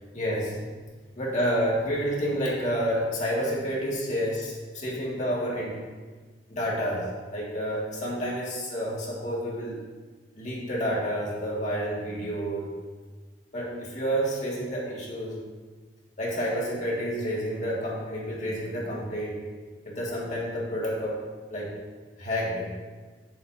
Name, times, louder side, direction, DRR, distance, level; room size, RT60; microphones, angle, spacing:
voice 1, 0.1-0.7 1.2-5.8 6.5-9.8 10.3-12.7 13.5-15.4 16.2-19.4 19.9-21.2 21.5-21.7 22.2-22.7, equal, 45° left, -5 dB, 2.1 m, -29 dB
9.9 x 7.3 x 2.8 m, 1.4 s
head